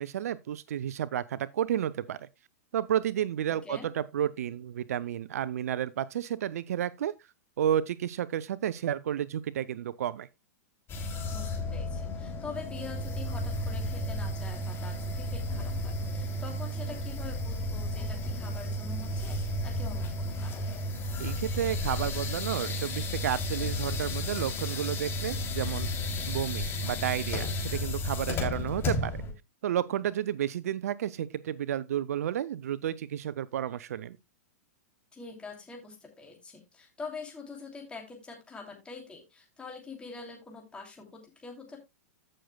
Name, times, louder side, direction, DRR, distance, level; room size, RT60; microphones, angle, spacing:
voice 1, 0.0-2.3 2.7-7.1 7.6-10.3 21.2-25.9 26.3-29.2 29.6-34.2, right 10 dB, 70° right, 0.5 m, -31 dB
sound 1, 10.9-29.3, left 1 dB, 25° left, 2.9 m, -33 dB
voice 2, 11.3-20.6 26.0-26.3 35.1-41.8, left 4 dB, 10° left, 2.8 m, -45 dB
15.0 x 6.5 x 2.2 m
hypercardioid pair, 115°, 8 cm